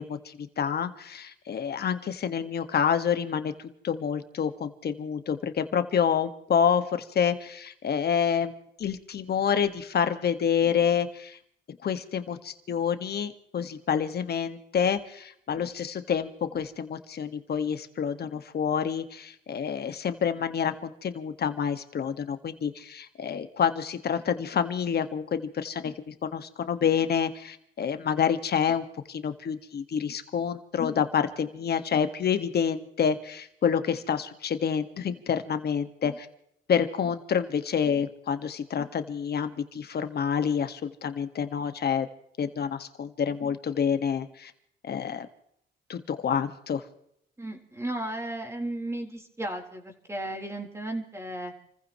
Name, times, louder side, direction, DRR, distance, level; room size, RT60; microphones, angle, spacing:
voice 1, 0.0-3.5 3.8-8.5 8.8-11.4 11.8-36.3 36.7-42.1 42.4-44.5 44.8-45.3 45.9-46.8, left 7 dB, 55° left, 9 dB, 1.7 m, -28 dB
voice 2, 47.4-51.5, right 1 dB, 15° right, 1 dB, 4.0 m, -34 dB
29.5 x 15.5 x 3.1 m, 0.71 s
cardioid pair, 90°, 20 cm